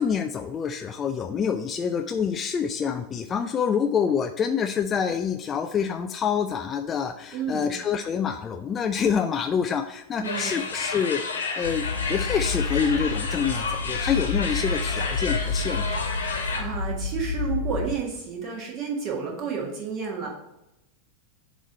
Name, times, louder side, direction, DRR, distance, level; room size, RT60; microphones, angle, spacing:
voice 1, 0.0-11.2 11.6-11.8 12.1-15.9, left 7 dB, 25° left, 6 dB, 0.3 m, -26 dB
voice 2, 7.3-7.7 10.2-10.5 16.3-20.3, right 6 dB, 35° right, 0 dB, 1.6 m, -31 dB
sound 1, 10.2-16.6, left 4 dB, 70° left, 1.2 m, -31 dB
sound 2, 11.6-18.0, left 4 dB, 90° right, 1.0 m, -30 dB
7.1 x 3.1 x 5.3 m, 0.89 s
figure-of-eight pair, 90°, 0 cm